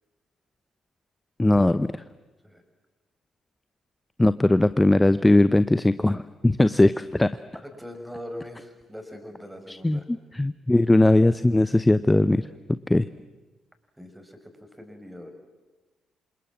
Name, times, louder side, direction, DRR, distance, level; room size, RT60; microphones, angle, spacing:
voice 1, 1.4-2.0 4.2-7.3 9.7-12.5 12.9-13.1, left 2 dB, 15° left, 14 dB, 0.8 m, -20 dB
voice 2, 7.5-10.0 14.0-15.3, equal, 5° right, 6 dB, 6.0 m, -41 dB
27.5 x 27.5 x 7.5 m, 1.2 s
figure-of-eight pair, 45°, 0 cm